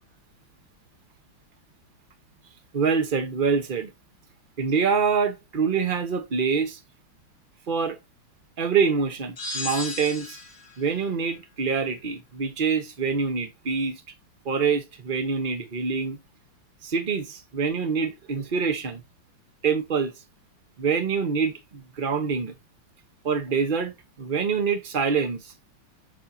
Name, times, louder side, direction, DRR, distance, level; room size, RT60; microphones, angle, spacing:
voice 1, 2.7-3.9 4.6-6.8 7.7-8.0 8.6-10.4 10.8-13.9 14.4-16.2 16.8-19.0 19.6-20.1 20.8-22.5 23.2-25.5, right 5 dB, 35° right, 0.9 m, -25 dB
sound 1, 9.4-10.7, left 2 dB, 35° left, 1.9 m, -34 dB
6.5 x 6.2 x 2.7 m
omnidirectional pair, 2.1 m